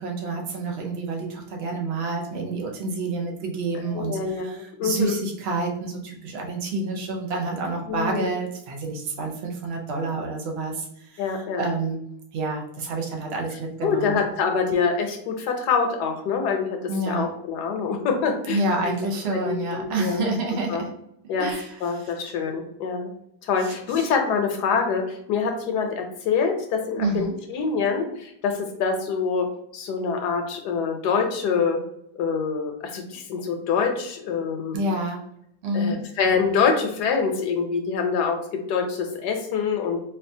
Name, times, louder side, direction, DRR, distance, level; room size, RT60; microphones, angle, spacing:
voice 1, 0.0-12.0 12.3-14.2 16.9-17.3 18.5-20.9 21.4-22.3 23.6-24.1 27.0-27.3 34.7-35.2 35.6-36.1, right 2 dB, 80° right, 0 dB, 0.5 m, -28 dB
voice 2, 3.8-5.2 7.9-8.3 11.2-11.6 13.8-16.7 17.1-18.6 19.5-20.2 20.7-20.8 21.3-21.5 21.8-23.1 23.4-29.5 29.7-31.8 32.1-34.8 35.7-38.4 38.7-40.0, left 5 dB, 75° left, 4 dB, 1.1 m, -25 dB
4.2 x 2.4 x 2.6 m, 0.74 s
omnidirectional pair, 1.9 m